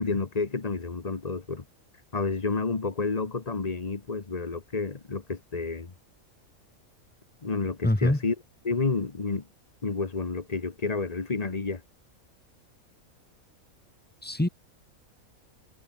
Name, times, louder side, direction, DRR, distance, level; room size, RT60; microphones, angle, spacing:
voice 1, 0.0-1.6 2.1-5.9 7.4-8.3 8.6-9.5 9.8-11.8, left 4 dB, 30° left, 1.3 m, -30 dB
voice 2, 7.8-8.2 14.2-14.5, left 1 dB, 5° left, 1.4 m, -23 dB
omnidirectional pair, 1.5 m